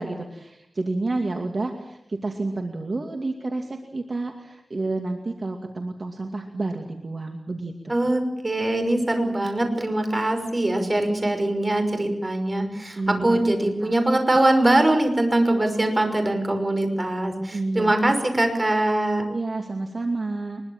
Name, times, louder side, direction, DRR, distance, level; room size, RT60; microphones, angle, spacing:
voice 1, 0.0-7.9 13.0-13.4 13.8-14.0 17.5-18.1 19.3-20.6, right 2 dB, 50° right, 3 dB, 2.4 m, -30 dB
voice 2, 7.9-19.3, right 1 dB, 30° right, 6 dB, 5.8 m, -22 dB
23.0 x 22.5 x 7.4 m, 0.79 s
wide cardioid pair, 90°, 0 cm